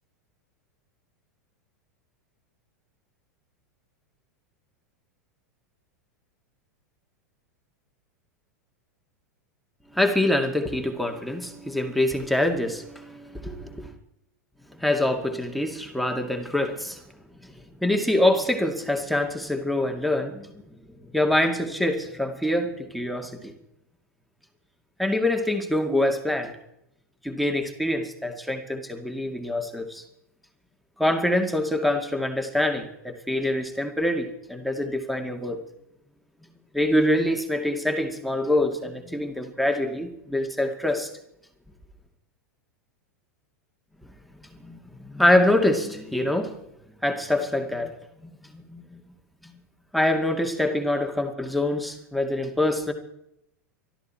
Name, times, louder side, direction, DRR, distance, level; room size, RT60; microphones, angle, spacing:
voice 1, 9.9-13.9 14.8-17.0 17.4-17.5 17.8-20.5 21.1-23.5 25.0-26.5 27.2-30.0 31.0-35.6 36.7-41.1 44.6-46.5 47.0-49.0 49.4-49.5 49.9-52.9, left 1 dB, ahead, 6 dB, 2.3 m, -25 dB
24.5 x 13.5 x 4.4 m, 0.79 s
hypercardioid pair, 95°, 9 cm